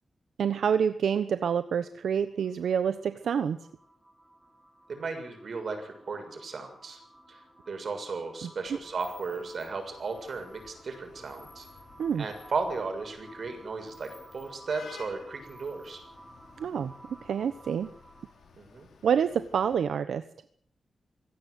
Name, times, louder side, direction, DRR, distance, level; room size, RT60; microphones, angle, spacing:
voice 1, 0.4-3.6 8.4-8.5 12.0-12.2 16.6-17.9 19.0-20.2, right 7 dB, 90° right, 11 dB, 1.1 m, -27 dB
sound 1, 1.8-18.5, right 1 dB, 5° right, 6.3 m, -54 dB
voice 2, 4.9-7.0 7.3-11.7 12.2-16.0 18.6-18.9, right 4 dB, 60° right, 6 dB, 6.8 m, -35 dB
Vehicle horn car horn honking / Traffic noise roadway noise, 8.6-19.8, left 6 dB, 85° left, 5.6 m, -54 dB
25.0 x 17.0 x 8.1 m, 0.64 s
cardioid pair, 85°, 0 cm